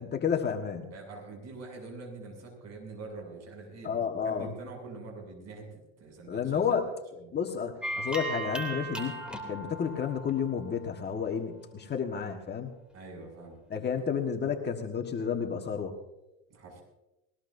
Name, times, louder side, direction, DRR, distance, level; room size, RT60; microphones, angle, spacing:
voice 1, 0.0-0.9 3.8-4.5 6.3-12.7 13.7-16.0, left 7 dB, 30° left, 3 dB, 1.5 m, -31 dB
voice 2, 0.9-6.8 7.2-7.4 12.9-13.6 16.5-16.8, right 3 dB, 45° right, 2 dB, 7.3 m, -45 dB
sound 1, 7.8-11.3, right 2 dB, 5° right, 2.9 m, -38 dB
20.5 x 19.5 x 2.7 m, 0.94 s
supercardioid pair, 105°, 36 cm